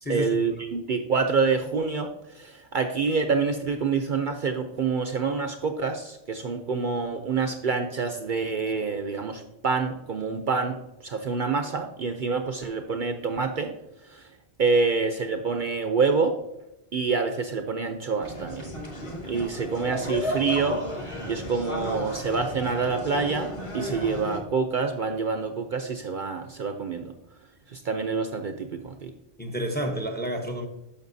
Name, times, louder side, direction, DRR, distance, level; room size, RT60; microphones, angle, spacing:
voice 1, 0.1-13.7 14.1-14.3 14.6-16.3 16.9-18.7 19.2-27.1 27.7-29.1, right 4 dB, 55° right, 0.7 m, -27 dB
sound 1, 18.2-24.4, left 1 dB, 30° left, 1.2 m, -34 dB
voice 2, 29.4-30.7, right 1 dB, 10° left, 0.8 m, -29 dB
10.5 x 6.8 x 2.6 m
omnidirectional pair, 1.1 m